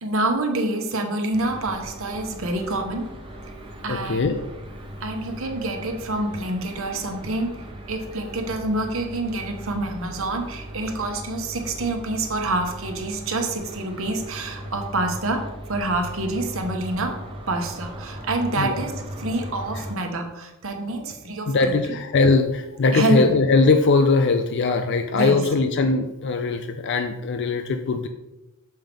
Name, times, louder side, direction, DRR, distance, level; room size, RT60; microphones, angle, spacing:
voice 1, 0.0-3.1 3.8-4.3 5.0-7.5 7.9-17.2 17.5-18.9 19.2-21.8 22.9-23.2 25.1-25.4, right 2 dB, 65° right, 3 dB, 1.0 m, -27 dB
sound 1, 1.3-20.0, equal, 25° right, 0.8 m, -38 dB
voice 2, 3.9-4.4 18.5-18.8 19.7-19.8 21.5-28.1, left 3 dB, 50° left, 7 dB, 0.4 m, -21 dB
7.4 x 5.5 x 3.5 m, 0.99 s
head